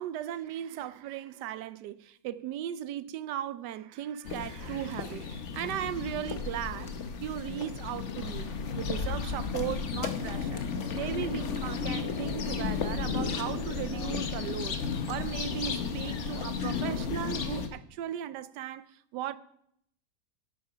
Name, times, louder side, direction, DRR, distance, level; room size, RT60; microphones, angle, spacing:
voice 1, 0.0-6.9 7.2-8.5 8.7-10.6 10.9-14.8 15.1-18.8 19.1-19.4, right 11 dB, 85° right, 1.2 m, -37 dB
sound 1, 4.2-17.7, left 5 dB, 50° left, 1.2 m, -33 dB
sound 2, 8.7-10.3 11.0-13.5 13.9-14.2, left 1 dB, 20° left, 1.6 m, -51 dB
12.5 x 8.5 x 5.0 m
omnidirectional pair, 1.8 m